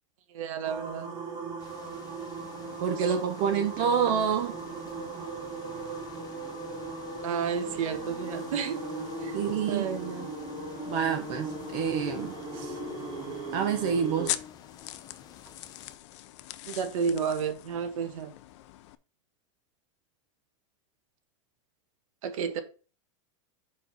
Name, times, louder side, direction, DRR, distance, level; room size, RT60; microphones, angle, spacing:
voice 1, 0.3-1.1 7.2-8.9 9.2-9.4 9.7-10.3 16.7-18.3 22.2-22.6, right 6 dB, 80° right, 1.4 m, -31 dB
sound 1, 0.6-14.3, right 4 dB, 25° right, 2.1 m, -39 dB
sound 2, 1.6-16.0, left 8 dB, 20° left, 0.7 m, -46 dB
voice 2, 2.8-4.6 9.3-9.9 10.9-12.8 13.5-14.3, right 7 dB, 45° right, 0.9 m, -28 dB
sound 3, 10.7-19.0, left 15 dB, 60° left, 0.5 m, -42 dB
5.1 x 5.0 x 5.5 m
supercardioid pair, 160°, 17 cm